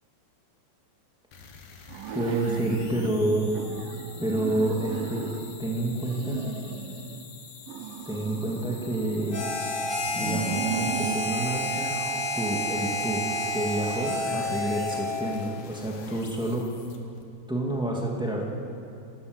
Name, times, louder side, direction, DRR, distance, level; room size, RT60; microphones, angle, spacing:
sound 1, 1.3-17.2, left 5 dB, 55° left, 2.6 m, -47 dB
sound 2, 1.9-3.1 3.5-5.6 6.0-7.2 7.7-9.6 10.1-11.3, right 8 dB, 80° right, 2.0 m, -36 dB
voice 1, 2.1-3.5 4.2-5.3 5.6-6.4 8.0-9.5 10.1-12.0 12.3-13.2 13.5-16.6 17.5-18.5, right 1 dB, 5° right, -2 dB, 0.8 m, -28 dB
Harmonica, 9.3-15.3, left 1 dB, 35° left, 2.1 m, -30 dB
30.0 x 13.0 x 8.1 m, 2.6 s
omnidirectional pair, 5.0 m